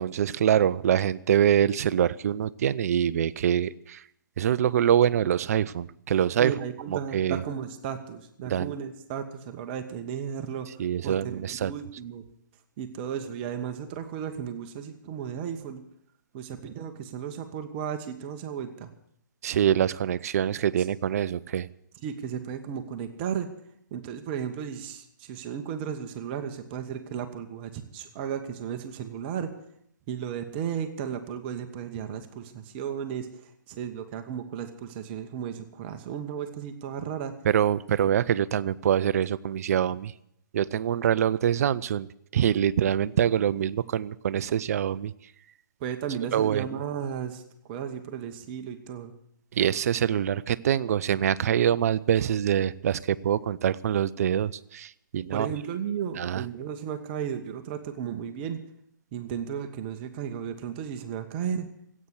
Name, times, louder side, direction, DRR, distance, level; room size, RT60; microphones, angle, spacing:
voice 1, 0.0-4.0 4.4-6.5 6.9-7.4 8.5-8.7 10.8-11.7 19.4-21.7 37.4-40.1 40.5-42.1 42.3-45.1 46.3-46.6 49.5-55.5 56.2-56.4, right 9 dB, 50° right, 18 dB, 0.6 m, -25 dB
voice 2, 6.4-10.7 11.0-12.2 12.8-15.8 16.3-18.9 21.9-23.5 23.9-29.5 30.1-37.3 45.8-47.4 47.7-49.1 55.3-58.6 59.1-61.7, right 8 dB, 30° right, 8 dB, 1.2 m, -34 dB
15.5 x 8.7 x 9.7 m, 0.74 s
figure-of-eight pair, 135°, 11 cm